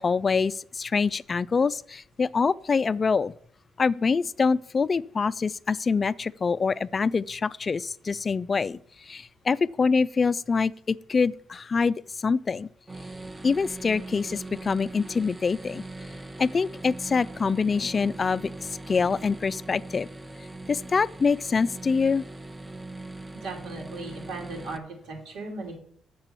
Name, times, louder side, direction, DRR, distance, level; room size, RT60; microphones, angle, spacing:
voice 1, 0.0-3.3 3.8-12.7 13.4-15.8 16.4-20.1 20.7-22.2, left 5 dB, 35° left, 0.3 m, -25 dB
sound 1, 12.9-24.8, right 2 dB, 15° right, 0.7 m, -41 dB
voice 2, 23.3-25.8, right 3 dB, 85° right, 2.5 m, -37 dB
7.3 x 6.8 x 6.8 m
cardioid pair, 90°, 0 cm